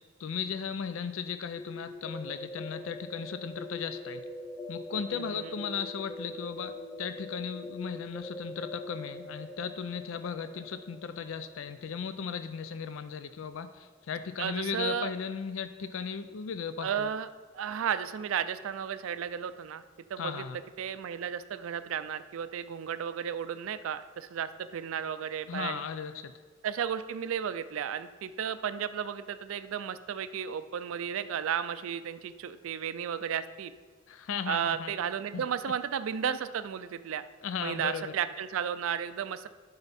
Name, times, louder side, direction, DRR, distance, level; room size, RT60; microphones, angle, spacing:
voice 1, 0.2-4.2 4.7-17.1 20.2-20.6 25.5-26.3 34.1-34.9 35.3-35.4 37.4-38.1, left 6 dB, 70° left, 11 dB, 0.4 m, -36 dB
sound 1, 1.6-13.3, left 1 dB, 10° left, 0.5 m, -43 dB
voice 2, 5.1-5.5 14.4-15.1 16.8-17.3 17.5-19.8 20.1-20.5 20.8-25.8 26.6-33.7 34.5-37.2 37.6-39.5, right 8 dB, 75° right, 12 dB, 0.4 m, -33 dB
10.5 x 5.5 x 4.1 m, 1.5 s
head